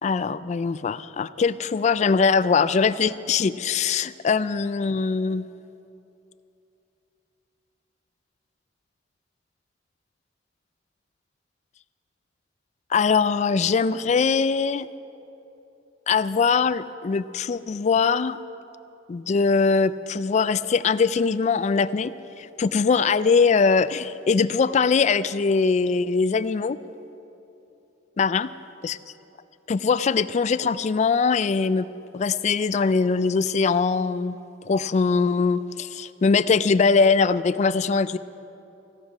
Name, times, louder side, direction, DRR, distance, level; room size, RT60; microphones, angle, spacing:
voice 1, 0.0-5.5 12.9-14.9 16.1-18.4 19.1-26.8 28.2-28.5 28.8-29.0 29.7-31.9 32.1-34.4 34.7-38.2, left 5 dB, 40° left, 16 dB, 0.3 m, -22 dB
16.0 x 12.5 x 4.9 m, 2.9 s
head